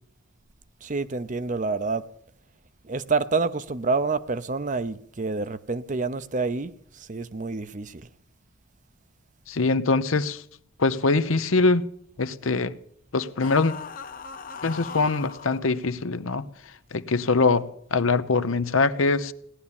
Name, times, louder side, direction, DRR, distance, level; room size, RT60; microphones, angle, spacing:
voice 1, 0.8-2.1 2.8-8.1, right 4 dB, 40° right, 0.7 m, -28 dB
voice 2, 9.5-10.4 10.8-11.9 12.2-12.7 13.1-13.7 14.6-16.4 16.9-19.3, left 3 dB, 85° left, 0.9 m, -23 dB
sound 1, 13.4-15.6, left 6 dB, 45° left, 0.9 m, -38 dB
17.5 x 11.0 x 7.1 m
head